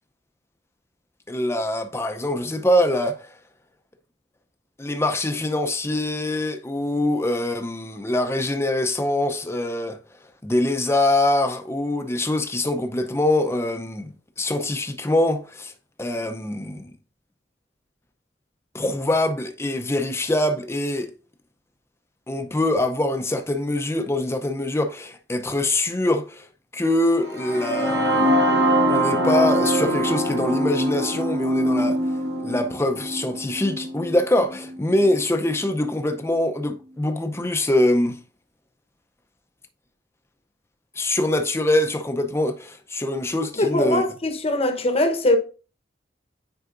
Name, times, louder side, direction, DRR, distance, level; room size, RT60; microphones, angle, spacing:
voice 1, 1.3-3.3 4.8-10.0 10.4-15.7 16.0-16.9 18.7-21.1 22.3-26.5 26.7-28.4 28.9-32.0 32.4-38.2 41.0-44.0, left 1 dB, 15° left, 0.6 m, -24 dB
sound 1, 27.3-35.2, equal, 70° right, 1.6 m, -23 dB
voice 2, 43.6-45.4, left 1 dB, 35° left, 0.9 m, -21 dB
9.4 x 4.7 x 2.5 m
head